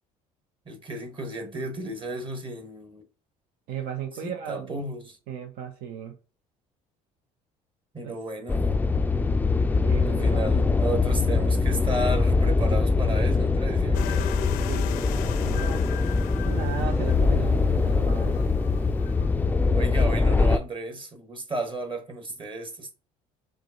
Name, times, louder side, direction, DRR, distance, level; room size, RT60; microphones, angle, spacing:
voice 1, 0.6-3.0 4.2-5.2 7.9-8.7 10.0-14.3 19.7-22.9, right 1 dB, 30° right, 1.3 m, -33 dB
voice 2, 3.7-4.7 5.3-6.2 8.0-8.1 9.8-10.7 14.6-15.9 16.5-18.4, right 8 dB, 70° right, 0.6 m, -36 dB
sound 1, 8.5-20.6, left 4 dB, 10° left, 0.3 m, -23 dB
sound 2, 13.9-20.1, left 14 dB, 75° left, 0.5 m, -39 dB
4.9 x 2.2 x 3.8 m
supercardioid pair, 80°, 16 cm